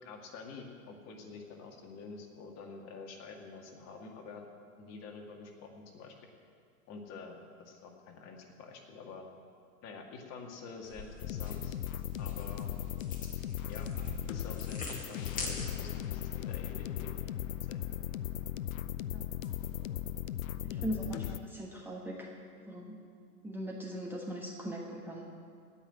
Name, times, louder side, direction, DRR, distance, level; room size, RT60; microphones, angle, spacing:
voice 1, 0.0-4.4 4.8-6.3 6.9-9.3 9.8-11.8 12.2-12.7 13.7-13.9 14.3-17.1 17.7-18.0 20.7-21.0, left 4 dB, 35° left, 2 dB, 2.1 m, -48 dB
sound 1, 10.8-16.1, left 2 dB, 20° left, 2.5 m, -44 dB
sound 2, 11.2-21.4, left 11 dB, 65° left, 0.6 m, -38 dB
voice 2, 20.6-22.3 22.7-23.0 23.4-25.3, equal, 5° right, -3 dB, 1.3 m, -39 dB
16.5 x 5.8 x 8.8 m, 2.2 s
hypercardioid pair, 110°, 45 cm